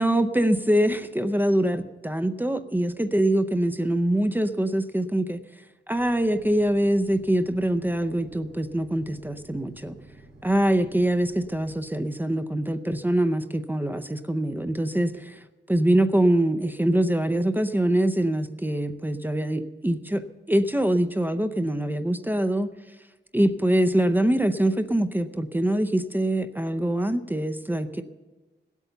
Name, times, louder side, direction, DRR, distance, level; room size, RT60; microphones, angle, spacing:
voice 1, 0.0-5.4 5.9-9.9 10.4-22.7 23.3-28.0, right 1 dB, 10° right, 9 dB, 0.6 m, -24 dB
sound 1, 6.0-11.7, right 2 dB, 90° right, 3.2 m, -51 dB
17.0 x 8.3 x 6.9 m, 1.2 s
wide cardioid pair, 110°, 19 cm